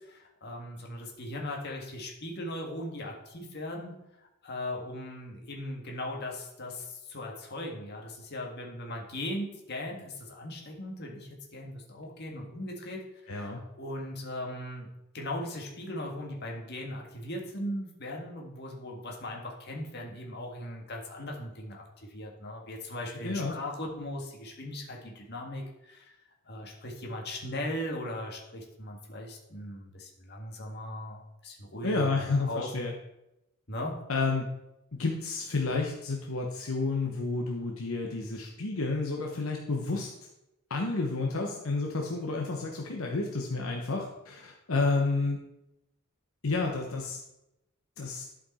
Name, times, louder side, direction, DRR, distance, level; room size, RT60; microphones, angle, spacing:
voice 1, 0.0-4.0 4.4-14.9 15.1-26.2 26.5-32.2 32.4-32.9 33.7-34.0, left 1 dB, 50° left, 0 dB, 1.8 m, -38 dB
voice 2, 13.3-13.6 23.1-23.6 31.8-32.9 34.1-34.4 34.9-40.1 40.7-45.4 46.4-47.2 48.0-48.2, left 3 dB, 75° left, 1 dB, 1.0 m, -30 dB
11.5 x 5.2 x 4.2 m, 0.90 s
head